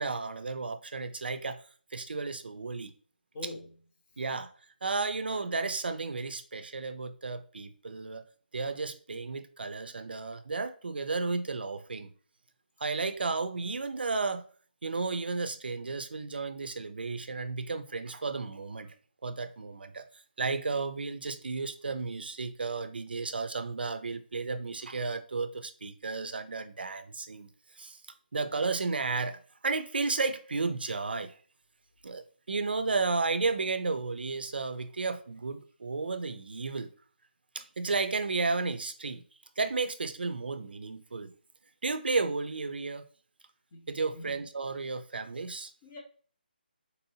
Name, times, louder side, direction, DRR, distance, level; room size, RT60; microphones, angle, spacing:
voice 1, 0.0-1.6 1.9-2.9 4.2-4.5 4.8-8.2 8.5-12.1 12.8-14.4 14.8-19.0 19.2-27.5 27.8-28.0 28.3-31.3 32.0-36.9 37.6-39.2 39.6-41.3 41.8-43.1 43.9-45.7, right 4 dB, 75° right, 0.4 m, -33 dB
voice 2, 3.3-3.7 43.7-44.4 45.8-46.0, left 2 dB, 10° left, 0.3 m, -44 dB
4.1 x 2.7 x 2.7 m
hypercardioid pair, 180°, 5 cm